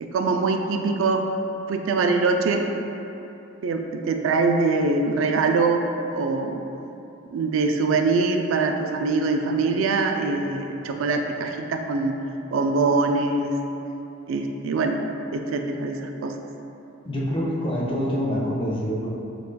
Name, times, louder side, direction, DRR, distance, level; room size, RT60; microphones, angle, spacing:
voice 1, 0.0-1.2 1.7-2.7 3.6-5.9 6.1-6.6 7.3-12.2 12.5-13.6 14.3-15.0 15.3-16.3, right 3 dB, 75° right, 4 dB, 0.3 m, -23 dB
voice 2, 17.0-19.1, equal, 25° left, -6 dB, 0.6 m, -26 dB
6.4 x 2.3 x 2.2 m, 2.9 s
head